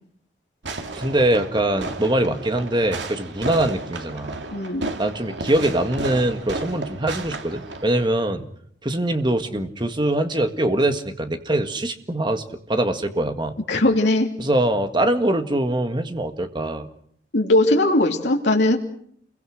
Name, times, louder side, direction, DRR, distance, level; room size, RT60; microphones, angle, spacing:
Fireworks, 0.6-8.0, right 2 dB, 85° right, 2.2 m, -33 dB
voice 1, 0.9-4.4 5.0-8.5 8.8-12.4 12.7-13.6 14.4-16.9, right 1 dB, 25° right, 7 dB, 1.8 m, -23 dB
voice 2, 4.5-4.9 13.7-14.3 17.3-18.8, left 1 dB, 75° left, 0 dB, 3.0 m, -19 dB
28.0 x 22.5 x 6.5 m, 0.65 s
head